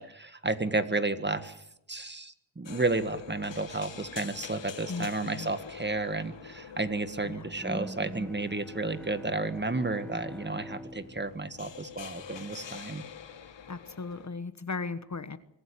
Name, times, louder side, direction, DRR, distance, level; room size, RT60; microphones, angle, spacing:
voice 1, 0.0-1.6 1.9-13.0, right 2 dB, 25° right, 10 dB, 1.7 m, -32 dB
sound 1, 2.6-14.3, left 7 dB, 70° left, 1.5 m, -46 dB
voice 2, 4.9-5.5 7.2-7.5 13.7-15.4, left 4 dB, 40° left, 12 dB, 1.4 m, -37 dB
Bowed string instrument, 7.6-12.7, equal, 5° left, 1.0 m, -44 dB
25.0 x 15.0 x 8.7 m, 0.81 s
cardioid pair, 80°, 44 cm